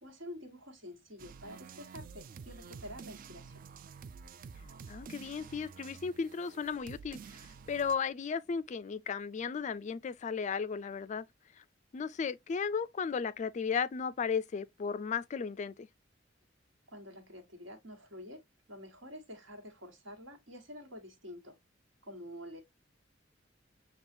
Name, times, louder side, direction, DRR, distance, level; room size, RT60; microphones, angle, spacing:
voice 1, 0.0-3.7 16.9-18.4 18.7-21.6 22.0-22.6, left 1 dB, 75° right, 1.5 m, -48 dB
sound 1, 1.2-7.9, right 5 dB, 45° right, 0.3 m, -50 dB
voice 2, 4.9-11.2 11.6-11.7 11.9-15.9, left 6 dB, 40° left, 0.3 m, -35 dB
7.0 x 2.4 x 2.6 m
head